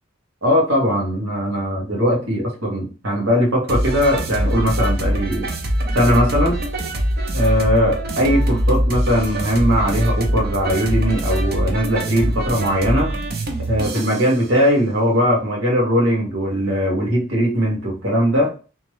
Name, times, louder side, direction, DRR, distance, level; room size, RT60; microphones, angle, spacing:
voice 1, 0.4-5.5 5.9-6.6 7.3-13.1 13.7-18.5, equal, 75° right, -3 dB, 1.7 m, -19 dB
sound 1, 3.7-14.3, right 1 dB, 50° right, 0.8 m, -23 dB
3.3 x 3.2 x 3.2 m, 0.34 s
head